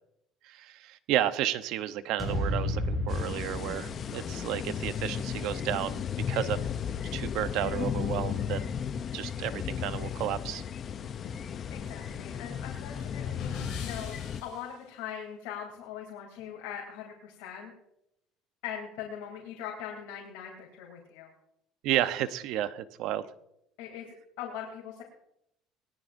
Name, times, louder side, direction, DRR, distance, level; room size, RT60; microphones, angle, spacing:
voice 1, 0.4-6.0 6.3-6.7 7.1-8.7 9.1-10.6 21.8-23.2, right 12 dB, 65° right, 11 dB, 0.8 m, -32 dB
sound 1, 2.2-6.4, left 1 dB, 5° left, 6.3 m, -35 dB
sound 2, 3.1-14.4, left 8 dB, 40° left, 0.6 m, -35 dB
sound 3, 10.9-14.7, left 5 dB, 60° left, 5.5 m, -45 dB
voice 2, 11.7-17.7 18.6-21.3 23.8-24.1 24.4-25.0, left 8 dB, 85° left, -1 dB, 3.1 m, -41 dB
20.0 x 14.5 x 2.6 m, 0.80 s
cardioid pair, 125°, 0 cm